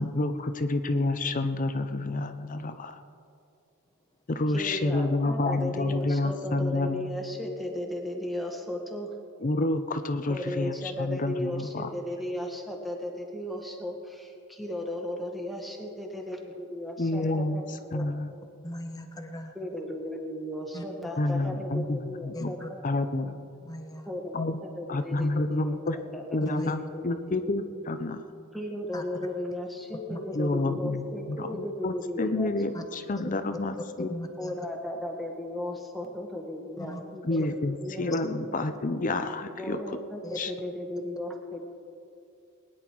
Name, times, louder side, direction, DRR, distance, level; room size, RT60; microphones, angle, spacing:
voice 1, 0.0-3.0 4.3-7.1 9.4-11.9 17.0-18.3 21.2-22.5 22.8-23.4 24.3-24.6 24.9-26.0 26.3-28.2 30.3-34.1 37.2-39.8 40.4-40.5, left 2 dB, 35° left, 9 dB, 0.6 m, -29 dB
voice 2, 4.5-9.1 10.3-17.6 17.9-18.4 19.5-22.8 24.0-24.4 24.7-27.5 28.5-32.5 34.4-37.2 37.6-38.6 39.6-41.6, left 1 dB, ahead, 0 dB, 1.6 m, -36 dB
voice 3, 18.6-19.5 20.7-20.8 22.3-22.7 23.6-24.1 25.2-25.3 26.4-26.8 28.9-29.0 30.1-30.2 32.7-32.8 33.2-33.4 34.0-34.5 36.8-37.0 37.3-37.4 40.2-40.4, equal, 15° left, 4 dB, 1.2 m, -38 dB
20.5 x 10.5 x 4.6 m, 2.5 s
head